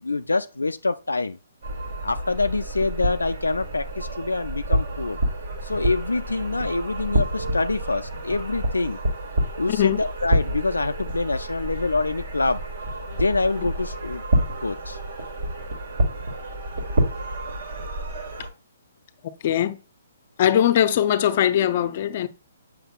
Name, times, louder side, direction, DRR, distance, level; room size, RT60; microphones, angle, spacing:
voice 1, 0.0-1.4 2.0-5.2 5.6-9.0 9.6-12.6 13.2-14.2 14.6-15.0, left 3 dB, 85° left, 0.3 m, -25 dB
sound 1, 1.6-18.5, right 1 dB, 60° right, 2.1 m, -28 dB
voice 2, 19.4-19.8 20.4-22.3, left 10 dB, 45° left, 0.6 m, -20 dB
7.9 x 6.1 x 2.4 m
figure-of-eight pair, 130°, 0 cm